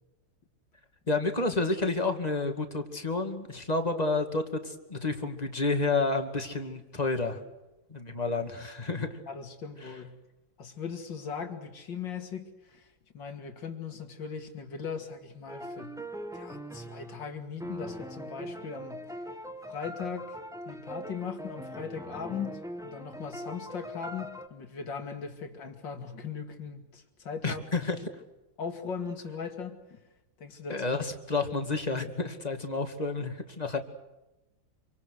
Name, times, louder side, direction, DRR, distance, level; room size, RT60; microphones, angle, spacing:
voice 1, 1.1-7.4 7.9-9.2 9.8-9.9 27.4-28.0 30.7-33.8, left 3 dB, 20° left, 6 dB, 2.3 m, -30 dB
voice 2, 9.3-10.2 10.6-12.9 13.1-16.0 16.3-19.1 19.7-20.4 20.7-27.6 28.6-30.0 30.4-30.9, left 6 dB, 75° left, 5 dB, 3.1 m, -39 dB
sound 1, 15.5-24.5, equal, ahead, 1.3 m, -41 dB
27.0 x 25.0 x 6.6 m, 0.99 s
omnidirectional pair, 2.0 m